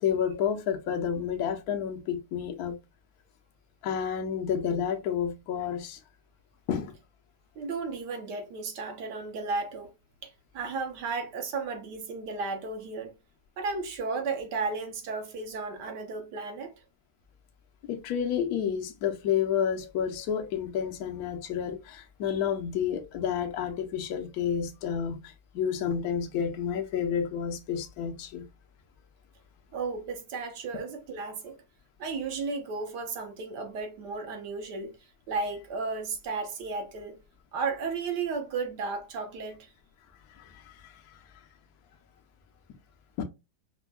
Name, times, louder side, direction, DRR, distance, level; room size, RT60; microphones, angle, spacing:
voice 1, 0.0-2.8 3.8-6.0 6.7-6.9 17.8-28.4 40.3-40.9 43.2-43.3, left 8 dB, 65° left, 1.0 m, -30 dB
voice 2, 7.6-9.9 10.2-13.1 13.6-16.7 29.7-31.6 32.0-35.0 35.3-37.2 37.5-39.7, right 4 dB, 70° right, 1.4 m, -34 dB
5.2 x 2.2 x 2.2 m
omnidirectional pair, 2.0 m